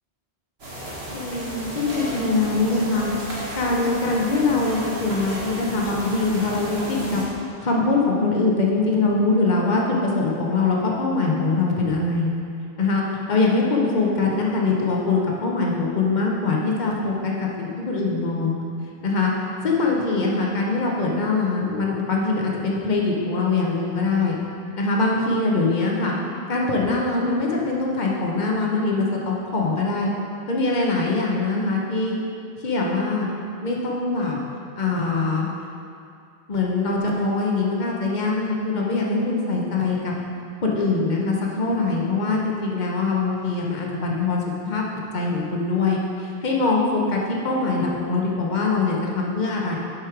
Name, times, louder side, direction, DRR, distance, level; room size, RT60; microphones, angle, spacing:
sound 1, 0.6-7.2, equal, 65° right, 1.9 m, -33 dB
voice 1, 1.1-3.1 3.5-7.2 7.6-12.3 12.8-18.5 19.0-24.4 24.8-26.1 26.5-30.1 30.5-32.2 32.6-33.3 33.6-34.4 34.8-35.5 36.5-40.1 40.6-44.8 45.1-49.8, left 3 dB, 45° left, -2 dB, 1.1 m, -23 dB
8.0 x 5.5 x 4.6 m, 2.5 s
omnidirectional pair, 1.1 m